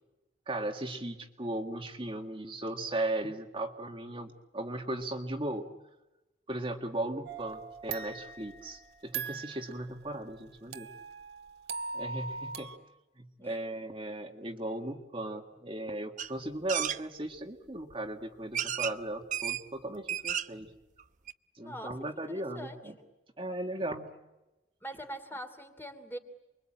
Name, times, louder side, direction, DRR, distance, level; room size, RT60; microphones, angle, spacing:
voice 1, 0.5-5.7 6.5-10.9 11.9-12.7 13.2-20.7 21.6-22.9 23.4-24.1, right 1 dB, 30° right, 3 dB, 1.9 m, -37 dB
sound 1, 7.2-9.7 10.7-12.8, right 5 dB, 70° right, 1.7 m, -40 dB
sound 2, 16.2-16.3 16.7-17.0 17.9-18.0 18.5-19.0 19.3-19.6 20.0-20.6 21.0-21.1 21.3-21.4, right 10 dB, 45° right, 0.9 m, -32 dB
voice 2, 21.6-22.8 24.8-26.2, equal, 15° left, 5 dB, 3.0 m, -43 dB
29.5 x 23.0 x 8.8 m, 1.0 s
head